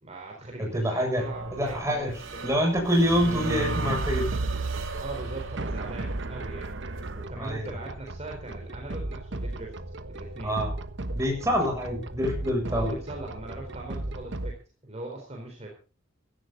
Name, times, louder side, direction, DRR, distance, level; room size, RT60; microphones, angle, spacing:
voice 1, 0.0-2.5 5.0-9.8 10.1-10.6 12.7-15.7, right 2 dB, 35° right, 0 dB, 4.1 m, -40 dB
voice 2, 0.6-1.2 1.5-2.1 2.4-4.3 7.4-7.7 10.4-10.7 11.1-12.9, equal, 15° right, 2 dB, 7.2 m, -26 dB
sound 1, 1.2-7.2, right 3 dB, 80° right, 2.5 m, -34 dB
sound 2, 3.0-14.5, right 1 dB, 65° right, 1.3 m, -36 dB
16.5 x 14.5 x 4.0 m, 0.35 s
head